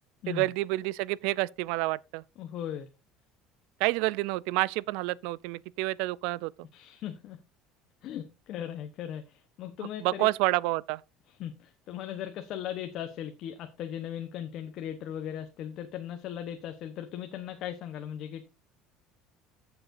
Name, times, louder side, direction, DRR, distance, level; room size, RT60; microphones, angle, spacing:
voice 1, 0.3-2.2 3.8-6.5 10.0-11.0, right 20 dB, 75° right, 0.4 m, -29 dB
voice 2, 2.4-2.9 6.7-7.4 8.0-10.3 11.3-18.6, left 10 dB, 50° left, 1.0 m, -38 dB
14.5 x 7.0 x 2.6 m
cardioid pair, 150°, 0 cm